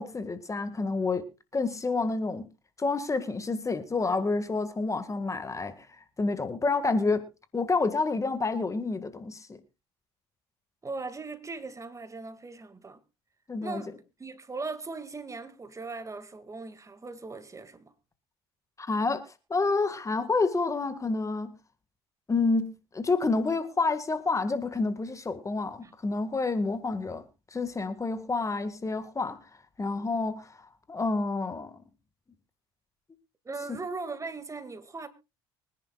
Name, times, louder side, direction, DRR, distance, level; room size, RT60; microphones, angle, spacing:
voice 1, 0.0-2.5 2.8-5.9 6.2-9.6 13.5-13.8 18.8-21.5 22.3-27.2 27.5-29.4 29.8-30.5 30.9-31.8 33.7-33.8, left 3 dB, 25° left, 1.8 m, -29 dB
voice 2, 10.8-13.0 13.6-17.9 25.8-25.9 33.4-35.1, right 3 dB, 25° right, 2.1 m, -39 dB
24.0 x 10.5 x 2.4 m
hypercardioid pair, 70°, 13 cm